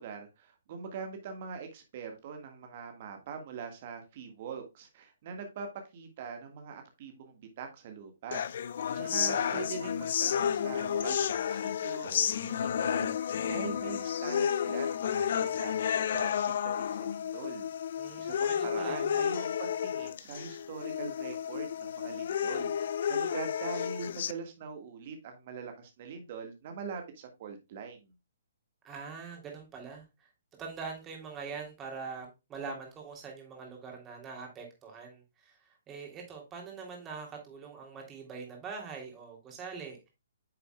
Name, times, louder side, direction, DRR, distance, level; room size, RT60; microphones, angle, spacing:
voice 1, 0.0-5.7 5.9-17.7 18.2-28.1, right 6 dB, 45° right, 5 dB, 1.7 m, -43 dB
sound 1, 8.3-24.3, left 8 dB, 55° left, 0.4 m, -31 dB
voice 2, 8.9-9.6 18.0-19.2 28.8-30.3 30.6-40.1, right 5 dB, 20° right, 1 dB, 3.1 m, -43 dB
9.2 x 6.8 x 2.3 m, 0.25 s
figure-of-eight pair, 130°, 0 cm